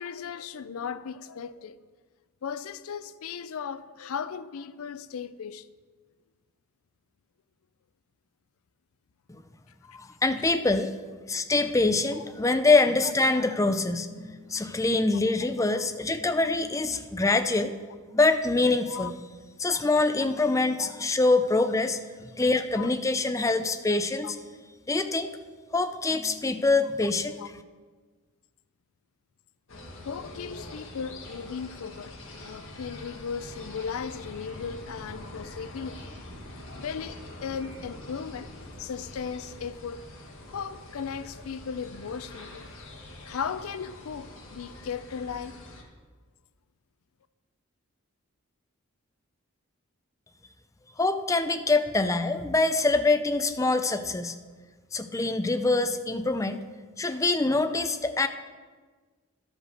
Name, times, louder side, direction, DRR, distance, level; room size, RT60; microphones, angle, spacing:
voice 1, 0.0-1.8 2.4-5.7 12.1-12.2 14.6-14.7 18.9-19.1 20.8-20.9 22.8-22.9 24.2-24.3 27.4-27.5 30.0-32.2 32.4-36.1 36.5-38.5 38.8-40.1 40.5-42.9 43.2-45.6, left 6 dB, 75° left, 0.4 m, -37 dB
voice 2, 9.9-10.9 11.3-17.7 18.1-19.1 19.6-24.4 24.9-25.3 25.7-27.4 51.0-54.3 54.9-56.6 57.0-58.3, left 3 dB, 15° left, 0.4 m, -25 dB
sound 1, 29.7-45.8, left 1 dB, 60° left, 1.5 m, -44 dB
11.5 x 5.1 x 6.4 m
head